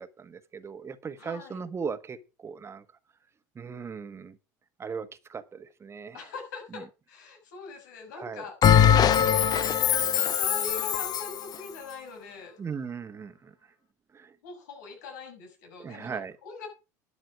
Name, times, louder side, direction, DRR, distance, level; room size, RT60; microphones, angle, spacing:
voice 1, 0.0-2.8 3.5-4.4 4.8-6.2 8.2-8.4 9.1-9.5 12.6-13.5 14.1-14.3 15.8-16.3, right 6 dB, 25° right, 11 dB, 1.5 m, -38 dB
voice 2, 1.2-1.6 6.1-12.6 14.4-16.7, left 4 dB, 80° left, 4 dB, 6.0 m, -43 dB
Bell, 8.6-11.4, left 9 dB, 40° left, 1.0 m, -21 dB
12.0 x 8.9 x 4.7 m, 0.30 s
hypercardioid pair, 85°, 10 cm